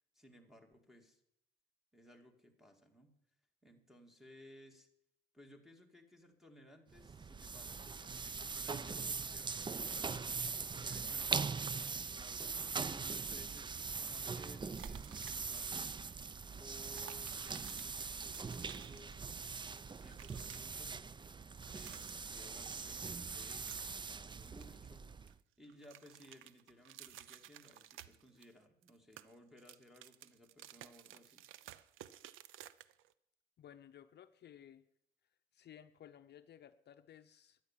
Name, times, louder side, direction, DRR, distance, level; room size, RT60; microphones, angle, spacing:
voice 1, 0.1-1.2 1.9-3.1 3.6-4.9 5.3-10.3 10.8-12.4 12.8-15.8 16.5-19.2 20.0-21.1 21.7-25.1 25.6-31.4, left 1 dB, ahead, 5 dB, 2.4 m, -60 dB
sound 1, 6.9-25.4, right 5 dB, 25° right, 0.5 m, -41 dB
sound 2, 14.8-15.8 16.1-16.2 16.7-19.5 19.7-20.8 21.5-22.4 22.7-24.0 24.3-25.3 25.6-28.5 28.8-33.1, right 12 dB, 85° right, 0.6 m, -56 dB
voice 2, 33.6-34.8 35.5-37.6, left 10 dB, 60° left, 10 dB, 0.7 m, -57 dB
13.0 x 9.7 x 7.4 m, 0.77 s
cardioid pair, 90°, 20 cm